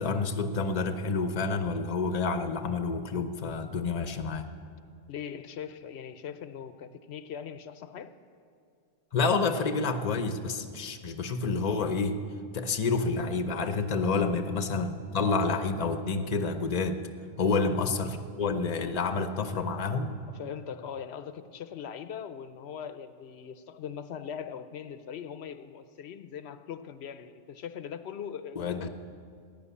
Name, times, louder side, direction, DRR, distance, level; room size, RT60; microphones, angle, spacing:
voice 1, 0.0-4.5 9.1-12.2 12.5-17.0 17.4-20.1 28.6-28.9, left 4 dB, 40° left, 8 dB, 0.9 m, -29 dB
voice 2, 5.1-8.1 14.3-14.5 17.5-17.8 20.3-28.9, left 8 dB, 75° left, 11 dB, 1.0 m, -41 dB
15.5 x 10.5 x 8.4 m, 2.3 s
omnidirectional pair, 1.1 m